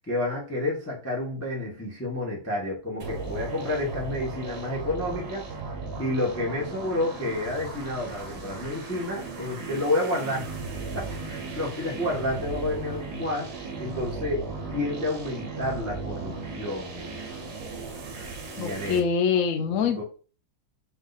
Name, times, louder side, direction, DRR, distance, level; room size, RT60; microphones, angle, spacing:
voice 1, 0.1-5.4 6.0-10.5 10.9-17.2 18.5-19.1 19.7-20.0, left 1 dB, 15° left, 0.6 m, -30 dB
sound 1, 3.0-19.0, right 3 dB, 60° right, 1.6 m, -36 dB
voice 2, 18.6-20.0, left 6 dB, 65° left, 0.8 m, -24 dB
4.6 x 2.6 x 4.0 m
omnidirectional pair, 2.4 m